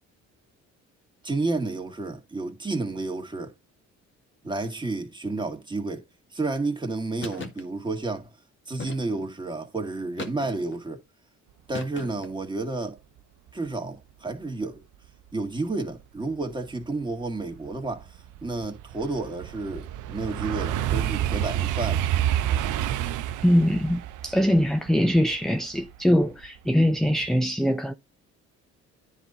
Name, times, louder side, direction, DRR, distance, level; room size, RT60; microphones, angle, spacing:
voice 1, 1.2-3.5 4.4-6.0 6.3-8.3 8.7-11.0 11.7-13.0 13.5-14.8 15.3-22.0, right 3 dB, 15° right, 2.1 m, -31 dB
sound 1, 7.2-7.6 8.8-9.3 10.2-10.8 11.7-12.4, left 3 dB, 40° left, 1.7 m, -38 dB
sound 2, 16.8-16.9 17.4-26.5 26.9-27.3, right 11 dB, 85° right, 0.7 m, -29 dB
voice 2, 23.4-27.9, equal, ahead, 0.5 m, -22 dB
10.0 x 4.2 x 3.9 m
cardioid pair, 90°, 30 cm